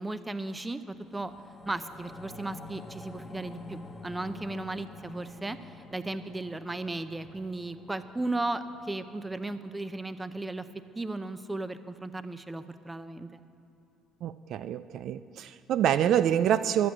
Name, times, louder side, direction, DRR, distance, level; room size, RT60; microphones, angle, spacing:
voice 1, 0.0-1.3 1.7-10.7 10.9-13.4, right 2 dB, 15° right, 12 dB, 0.6 m, -35 dB
sound 1, 0.9-11.5 11.9-12.0, left 2 dB, 15° left, 1.1 m, -48 dB
voice 2, 14.2-16.9, right 10 dB, 65° right, 13 dB, 0.4 m, -26 dB
12.0 x 9.1 x 7.2 m, 2.7 s
supercardioid pair, 85°, 0 cm